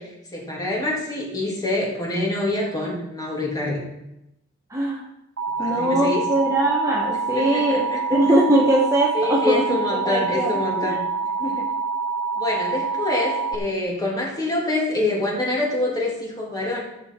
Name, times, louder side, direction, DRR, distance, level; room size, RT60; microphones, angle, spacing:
voice 1, 0.0-3.8 5.6-6.3 7.3-8.0 9.1-11.0 11.4-11.7 12.4-16.8, left 2 dB, 20° left, -3 dB, 2.4 m, -26 dB
Alarm, 5.4-13.6, right 4 dB, 75° right, 1.0 m, -26 dB
voice 2, 5.6-7.8 8.1-10.5 10.8-11.0, right 1 dB, 15° right, -3 dB, 1.2 m, -21 dB
14.0 x 7.7 x 4.5 m, 0.89 s
head